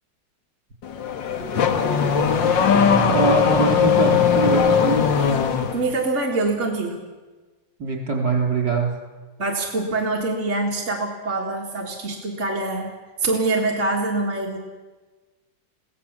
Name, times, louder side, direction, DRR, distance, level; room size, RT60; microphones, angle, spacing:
Car / Accelerating revving vroom, 0.8-5.9, left 6 dB, 85° left, 1.9 m, -19 dB
voice 1, 3.1-5.1 7.8-8.9, right 4 dB, 60° right, 1 dB, 4.3 m, -23 dB
voice 2, 5.7-7.0 9.4-12.9 13.2-14.6, right 2 dB, 40° right, -1 dB, 2.1 m, -24 dB
23.0 x 16.5 x 7.2 m, 1.3 s
omnidirectional pair, 2.0 m